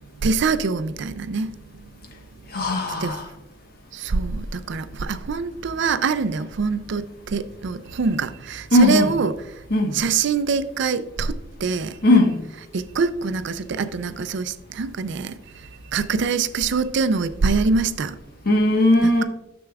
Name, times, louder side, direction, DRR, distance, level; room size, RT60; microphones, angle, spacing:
voice 1, 0.2-1.5 3.0-3.2 3.9-9.3 9.9-12.0 12.7-15.3 15.9-18.2 19.0-19.2, right 4 dB, 60° right, 0.4 m, -24 dB
voice 2, 2.5-3.3 8.7-9.1 9.7-10.0 12.0-12.4 18.4-19.2, left 1 dB, 50° left, 1.2 m, -18 dB
9.6 x 6.9 x 2.4 m
head